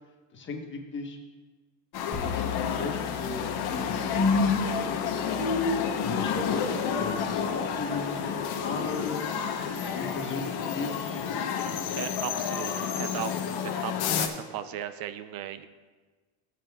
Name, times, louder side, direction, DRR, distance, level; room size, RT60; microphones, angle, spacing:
voice 1, 0.3-1.2 2.1-5.3 6.0-9.4 9.9-11.1, left 3 dB, 25° left, 2 dB, 1.3 m, -38 dB
sound 1, 1.9-14.3, left 7 dB, 50° left, 1.0 m, -30 dB
sound 2, 2.1-11.2, left 3 dB, 15° right, 2.8 m, -33 dB
voice 2, 11.9-15.7, right 9 dB, 50° right, 12 dB, 0.6 m, -37 dB
15.5 x 7.7 x 2.4 m, 1.3 s
cardioid pair, 135°, 47 cm